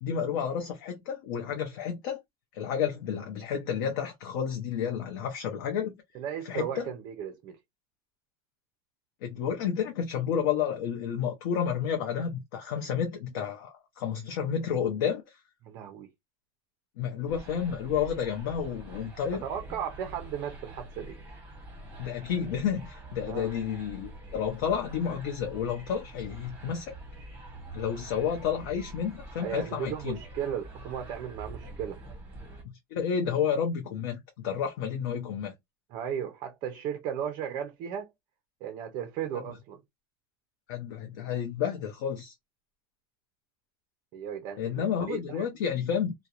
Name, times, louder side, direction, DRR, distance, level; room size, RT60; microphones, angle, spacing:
voice 1, 0.0-2.2 2.5-6.0 6.4-6.9 9.2-15.2 17.0-19.4 22.0-26.9 27.7-30.2 32.9-34.2 34.4-35.5 40.7-42.3 44.6-46.1, left 8 dB, 65° left, 0.6 m, -30 dB
voice 2, 6.1-7.6 15.6-16.1 19.3-21.2 23.2-23.5 29.4-32.0 35.9-38.1 38.6-39.8 44.1-45.5, right 9 dB, 35° right, 0.4 m, -36 dB
sound 1, 17.3-32.6, right 1 dB, 15° right, 0.8 m, -46 dB
2.3 x 2.0 x 2.7 m
supercardioid pair, 180°, 12 cm